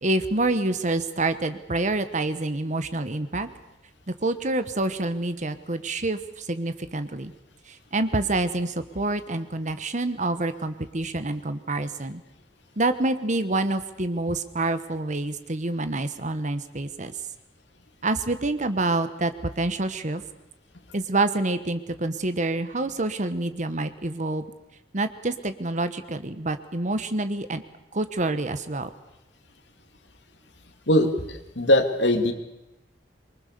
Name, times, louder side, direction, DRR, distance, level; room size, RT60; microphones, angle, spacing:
voice 1, 0.0-3.5 4.2-7.3 7.7-12.2 12.8-17.1 18.0-20.2 20.9-24.4 24.9-27.6 27.9-28.9, right 2 dB, 45° right, 11 dB, 1.3 m, -27 dB
voice 2, 30.9-32.3, left 1 dB, 75° left, 7 dB, 2.9 m, -21 dB
25.5 x 23.5 x 6.9 m, 0.93 s
head